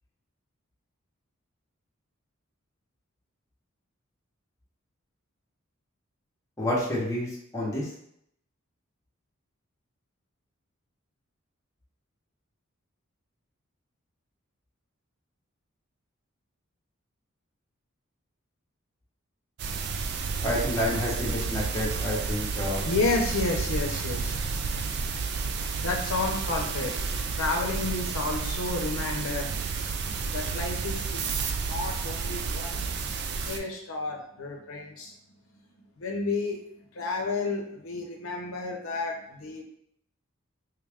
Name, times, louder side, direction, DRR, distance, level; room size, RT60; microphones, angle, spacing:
voice 1, 6.6-7.9 20.4-22.9, left 1 dB, 15° left, -5 dB, 0.8 m, -29 dB
sound 1, 19.6-33.6, right 5 dB, 50° right, 0.3 m, -31 dB
voice 2, 22.8-24.5 25.8-26.9 27.3-29.5 30.3-32.8 33.4-35.1 36.0-36.6 37.0-39.6, left 3 dB, 75° left, 2 dB, 0.6 m, -31 dB
3.4 x 2.3 x 3.4 m, 0.72 s
head